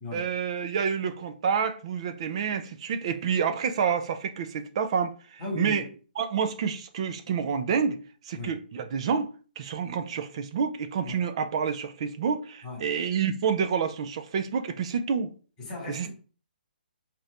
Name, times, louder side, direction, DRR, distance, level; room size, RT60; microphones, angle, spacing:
voice 1, 0.1-5.9 6.2-8.0 8.2-9.3 9.6-15.3 15.9-16.1, right 6 dB, 35° right, 0.4 m, -28 dB
voice 2, 5.4-5.8 8.3-8.5 11.1-11.2 12.6-12.8 15.6-16.1, left 2 dB, 15° left, 1.3 m, -36 dB
2.9 x 2.5 x 3.2 m
hypercardioid pair, 165°, 5 cm